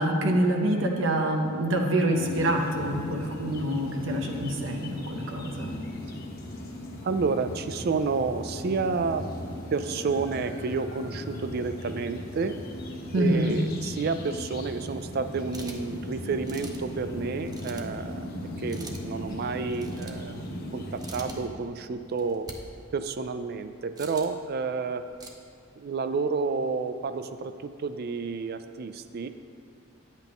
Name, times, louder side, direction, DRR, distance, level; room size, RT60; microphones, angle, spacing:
voice 1, 0.0-5.7 13.1-13.6, right 1 dB, 70° right, 2 dB, 0.8 m, -26 dB
sound 1, 2.2-21.5, left 1 dB, 50° left, 1.2 m, -37 dB
voice 2, 7.0-9.3 9.7-12.6 13.1-18.3 18.6-22.5 22.9-25.0 25.8-29.3, right 4 dB, 50° right, 10 dB, 0.4 m, -30 dB
sound 2, 15.5-15.9 16.5-16.9 17.5-17.9 18.7-19.0 19.7-20.3 20.9-21.4 22.1-22.6 24.0-24.4 25.1-25.3, right 3 dB, 20° right, 0.7 m, -44 dB
10.0 x 8.2 x 3.5 m, 2.5 s
head